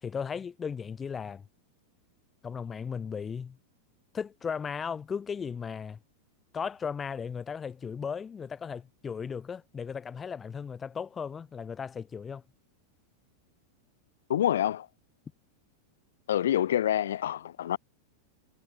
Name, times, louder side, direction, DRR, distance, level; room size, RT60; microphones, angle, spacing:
voice 1, 0.0-1.4 2.4-3.6 4.1-6.0 6.5-12.4, left 6 dB, 20° left, 1.7 m, -36 dB
voice 2, 14.3-14.9 16.3-17.8, left 11 dB, 60° left, 1.3 m, -27 dB
figure-of-eight pair, 90°, 0 cm